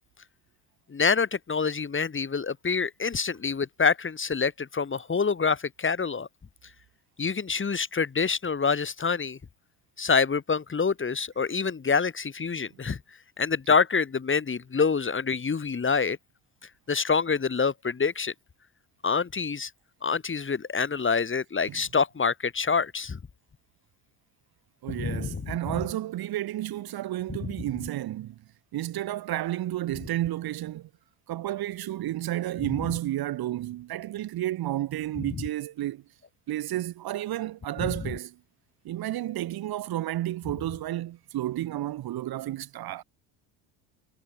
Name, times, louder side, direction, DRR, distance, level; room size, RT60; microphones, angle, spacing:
voice 1, 0.9-6.3 7.2-9.4 10.0-13.0 13.4-16.2 16.9-18.3 19.0-19.7 20.0-23.2 24.9-25.5 27.3-27.4 37.8-37.9, left 5 dB, 25° left, 2.5 m, -26 dB
voice 2, 24.8-28.4 28.7-30.9 31.3-36.0 36.5-38.4 38.8-43.0, right 14 dB, 55° right, 1.3 m, -31 dB
supercardioid pair, 75°, 45 cm